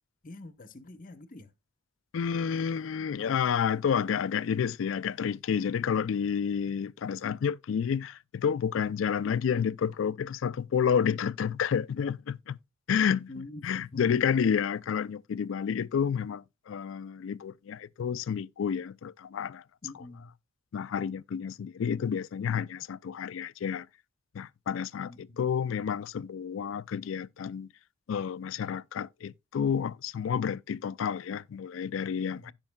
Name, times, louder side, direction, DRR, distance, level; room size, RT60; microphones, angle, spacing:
voice 1, 0.2-1.5 13.3-14.1 19.8-20.3 25.0-25.5 32.3-32.5, left 2 dB, 45° left, 0.9 m, -46 dB
voice 2, 2.1-12.6 12.9-13.3 13.6-19.6 20.7-23.9 24.3-27.7 28.1-32.5, left 7 dB, 75° left, 0.4 m, -30 dB
16.0 x 5.4 x 2.2 m
head